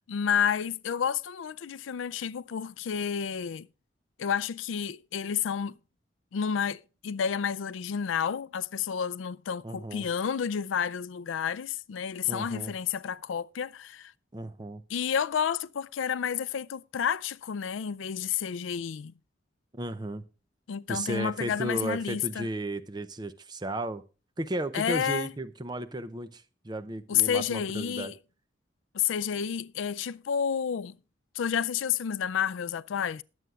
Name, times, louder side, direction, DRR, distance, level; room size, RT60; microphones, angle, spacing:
voice 1, 0.0-3.7 4.2-5.7 6.3-14.1 14.9-19.1 20.7-22.5 24.7-25.3 27.1-28.1 28.9-31.0 31.3-33.2, left 8 dB, 90° left, 0.4 m, -30 dB
voice 2, 9.6-10.1 12.3-12.7 14.3-14.8 19.7-20.3 20.9-24.0 24.4-28.1, right 1 dB, 20° right, 0.5 m, -34 dB
20.0 x 7.9 x 2.4 m
head